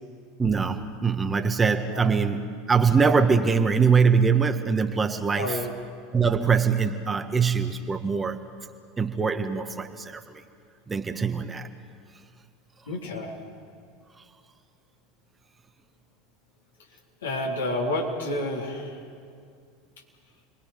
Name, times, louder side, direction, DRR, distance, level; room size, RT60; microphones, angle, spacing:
voice 1, 0.4-5.6 6.1-8.4 9.0-10.4 10.9-11.7, right 5 dB, 20° right, 7 dB, 1.5 m, -23 dB
voice 2, 5.3-5.7 12.9-13.3 17.2-19.0, left 1 dB, 75° left, -2 dB, 4.1 m, -29 dB
30.0 x 21.5 x 5.2 m, 2.2 s
figure-of-eight pair, 80°, 0 cm